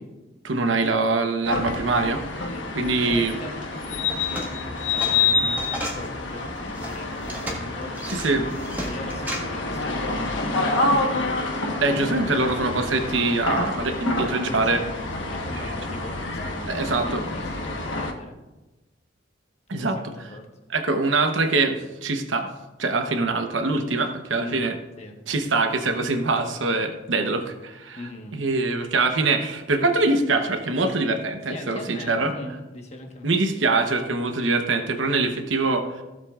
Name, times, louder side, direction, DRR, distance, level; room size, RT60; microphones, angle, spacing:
voice 1, 0.4-2.2 2.7-3.3 8.1-8.5 11.8-14.8 15.6-15.7 16.7-17.2 19.7-20.3 20.7-22.5 22.8-24.8 25.3-28.0 28.3-32.3 33.2-36.0, right 3 dB, 85° right, 6 dB, 1.0 m, -24 dB
sound 1, 1.4-18.1, left 3 dB, 80° left, 1.2 m, -28 dB
voice 2, 3.0-7.9 8.8-10.7 11.0-12.8 14.2-14.9 15.3-18.3 19.7-20.5 24.4-24.6 25.0-25.2 28.0-28.4 31.5-33.4, left 2 dB, 35° left, 2 dB, 1.3 m, -40 dB
sound 2, 4.0-6.1 6.6-9.4, equal, 10° right, 1.6 m, -34 dB
16.0 x 7.5 x 2.4 m, 1.1 s
head